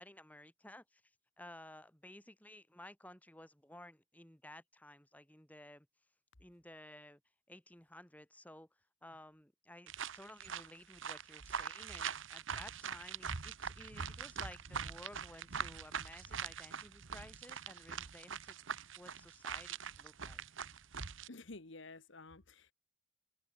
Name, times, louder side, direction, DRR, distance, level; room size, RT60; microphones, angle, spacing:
voice 1, 0.0-5.9 6.4-7.2 7.5-8.7 9.0-18.6 19.0-20.4, left 1 dB, 5° left, 3.4 m, -55 dB
sound 1, 9.9-21.3, right 6 dB, 65° right, 1.1 m, -43 dB
voice 2, 21.3-22.7, left 2 dB, 60° left, 1.6 m, -51 dB
open air
head